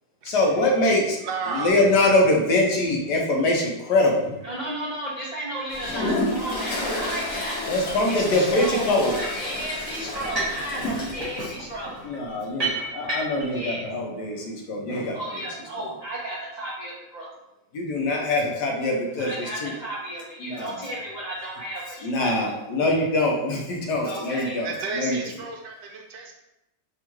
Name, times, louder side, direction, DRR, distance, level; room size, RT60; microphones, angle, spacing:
voice 1, 0.2-1.2 1.5-4.3 7.7-9.2 10.7-10.9 12.0-15.4 15.8-15.9 17.7-19.7 20.4-20.9 22.0-25.2, left 2 dB, 70° left, -1 dB, 1.3 m, -23 dB
voice 2, 1.2-1.7 24.6-26.3, right 4 dB, 80° right, 1 dB, 1.3 m, -32 dB
voice 3, 4.4-7.6 8.1-12.0 13.5-13.9 15.1-17.3 19.2-22.5 24.0-24.6 25.4-25.5, right 1 dB, 50° right, -7 dB, 0.5 m, -33 dB
Toilet flush, 5.7-11.5, left 1 dB, 50° left, 1.1 m, -30 dB
sound 1, 9.2-9.5 10.1-10.6 10.9-13.5, right 2 dB, 25° right, 1.2 m, -31 dB
3.6 x 2.4 x 4.5 m, 0.90 s
omnidirectional pair, 1.9 m